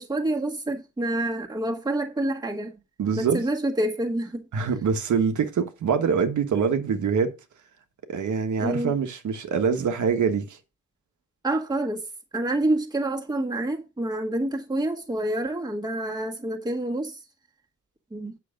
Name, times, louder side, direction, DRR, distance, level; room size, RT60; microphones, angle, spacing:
voice 1, 0.0-2.8 3.2-4.4 8.6-8.9 11.4-12.0 12.3-17.2 18.1-18.3, right 1 dB, 10° right, 1.7 m, -27 dB
voice 2, 3.0-3.4 4.5-7.3 8.1-10.6, right 6 dB, 65° right, 1.4 m, -24 dB
9.0 x 6.6 x 5.1 m
wide cardioid pair, 175°, 33 cm